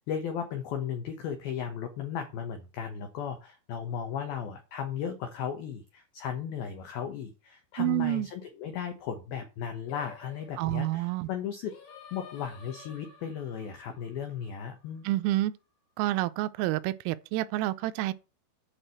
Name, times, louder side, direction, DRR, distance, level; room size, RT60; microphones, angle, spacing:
voice 1, 0.1-11.8 12.1-15.1, left 8 dB, 85° left, 2.1 m, -36 dB
voice 2, 7.8-8.3 10.6-11.3 15.1-15.5 16.0-18.1, right 16 dB, 85° right, 3.2 m, -28 dB
Singing, 9.9-15.2, left 6 dB, 60° left, 4.3 m, -52 dB
9.9 x 4.8 x 7.6 m
omnidirectional pair, 6.0 m